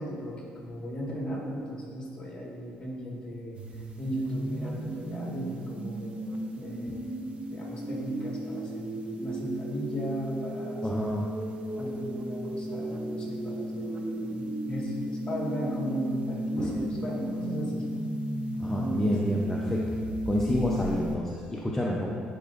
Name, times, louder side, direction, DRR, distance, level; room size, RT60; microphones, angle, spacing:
voice 1, 0.0-3.5 4.0-6.2 6.5-11.1 11.8-17.8 18.7-19.1 20.5-20.6, equal, 30° left, -3 dB, 1.6 m, -36 dB
sound 1, 3.5-21.2, right 1 dB, 40° right, 0.7 m, -34 dB
voice 2, 10.8-11.3 16.6-16.8 18.6-19.8 20.3-22.1, left 1 dB, 10° left, -4 dB, 0.6 m, -29 dB
10.5 x 4.8 x 2.5 m, 2.3 s
cardioid pair, 90°, 3 cm